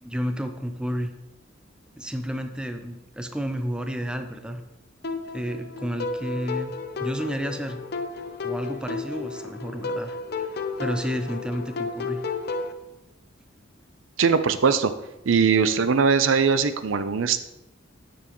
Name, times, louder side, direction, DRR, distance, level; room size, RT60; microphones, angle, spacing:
voice 1, 0.0-1.1 2.0-4.6 5.3-6.7 7.0-7.8 8.4-10.5 10.8-12.2, equal, 5° right, 6 dB, 0.5 m, -31 dB
sound 1, 5.0-12.7, left 4 dB, 50° left, 0.7 m, -32 dB
voice 2, 14.2-14.9 15.3-17.4, right 5 dB, 75° right, 11 dB, 0.5 m, -20 dB
10.0 x 7.0 x 3.1 m, 0.91 s
head